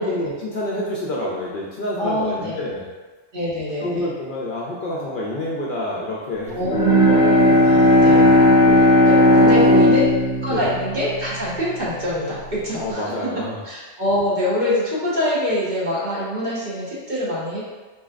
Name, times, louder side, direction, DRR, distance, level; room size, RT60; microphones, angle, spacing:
voice 1, 0.0-2.9 3.8-6.8 7.1-7.3 8.6-9.0 9.5-9.8 10.5-10.7 12.8-13.6, left 1 dB, 60° left, -4 dB, 0.6 m, -28 dB
voice 2, 2.0-2.5 3.3-4.1 6.5-8.3 9.1-10.1 10.4-13.1 13.6-17.6, left 1 dB, 45° right, -8 dB, 1.0 m, -25 dB
Bowed string instrument, 6.6-12.0, left 1 dB, 5° right, 0.4 m, -15 dB
3.8 x 2.7 x 2.4 m, 1.3 s
omnidirectional pair, 1.1 m